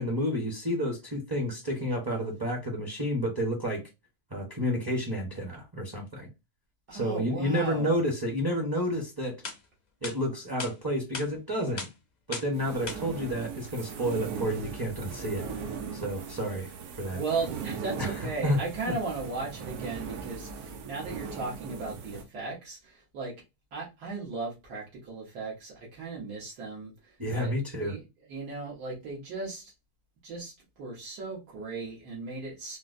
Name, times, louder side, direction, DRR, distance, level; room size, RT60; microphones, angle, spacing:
voice 1, 0.0-3.8 4.3-6.3 6.9-9.4 10.0-11.9 12.3-15.4 15.9-16.7 17.0-17.2 18.0-18.1 18.4-18.6 18.9-19.0 27.2-28.0, equal, 30° right, 0.4 m, -30 dB
voice 2, 6.9-7.9 17.1-23.3 23.7-27.6 27.8-28.0 28.3-29.7 30.2-32.8, right 3 dB, 90° right, 1.7 m, -36 dB
sound 1, 9.0-9.1 9.4-9.6 10.0-10.2 10.6-10.7 11.1-11.3 11.8-11.9 12.3-12.5 12.9-13.0, left 4 dB, 80° left, 0.4 m, -36 dB
sound 2, 12.5-22.3, right 6 dB, 75° right, 1.1 m, -39 dB
4.1 x 2.1 x 2.5 m
omnidirectional pair, 1.7 m